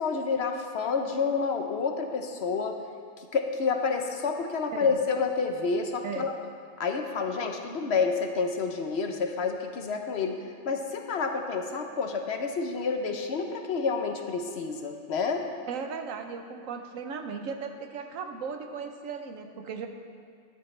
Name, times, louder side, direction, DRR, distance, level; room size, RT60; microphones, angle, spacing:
voice 1, 0.0-2.8 3.2-6.3 6.8-10.4 10.6-15.4, left 5 dB, 60° left, 4 dB, 1.0 m, -29 dB
voice 2, 15.7-19.9, right 5 dB, 90° right, 6 dB, 1.2 m, -37 dB
12.5 x 11.0 x 3.3 m, 2.2 s
omnidirectional pair, 1.4 m